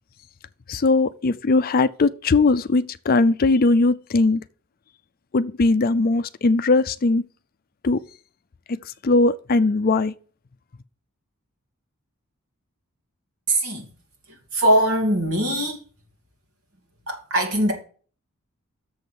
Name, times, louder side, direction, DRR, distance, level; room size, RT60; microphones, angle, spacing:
voice 1, 0.7-4.4 5.3-7.2 7.8-8.0 9.0-10.1, left 3 dB, 40° left, 0.4 m, -19 dB
voice 2, 13.5-13.9 14.3-15.8 17.1-17.7, right 1 dB, 75° right, 2.9 m, -21 dB
7.0 x 6.3 x 5.2 m
head